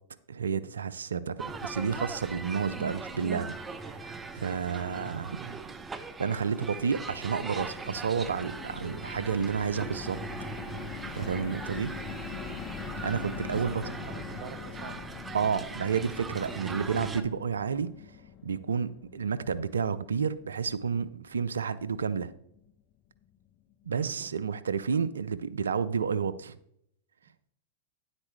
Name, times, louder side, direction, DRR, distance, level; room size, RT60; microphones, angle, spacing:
voice 1, 0.3-3.5 3.8-5.4 6.2-10.2 11.1-11.9 13.0-13.8 15.3-17.9 18.4-22.3 23.9-26.6, right 6 dB, 85° right, 0.5 m, -30 dB
sound 1, 1.4-17.2, right 4 dB, 15° right, 0.9 m, -40 dB
sound 2, 6.5-22.8 23.2-23.4 23.6-23.8, left 11 dB, 45° left, 0.5 m, -44 dB
voice 2, 13.6-15.0 23.9-24.4, right 10 dB, 60° right, 0.9 m, -45 dB
9.7 x 8.2 x 3.2 m
hypercardioid pair, 105°, 0 cm